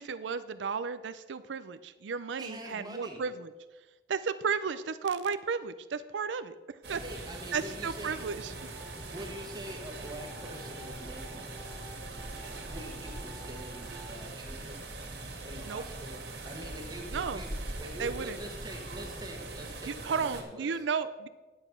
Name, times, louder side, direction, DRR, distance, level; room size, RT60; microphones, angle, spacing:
voice 1, 0.0-3.5 4.1-6.6 6.9-7.0 7.5-8.5 15.6-15.8 17.1-17.4 18.0-18.4 19.8-21.3, right 5 dB, 85° right, 12 dB, 0.5 m, -33 dB
voice 2, 2.4-3.2 6.9-8.3 9.1-11.4 12.5-14.8 15.4-17.5 17.8-20.8, equal, 20° right, 1 dB, 1.2 m, -44 dB
sound 1, 6.8-20.4, right 2 dB, 65° right, 2.2 m, -42 dB
sound 2, 8.0-14.2, equal, 25° left, 2.5 m, -51 dB
10.0 x 7.9 x 5.9 m, 1.2 s
head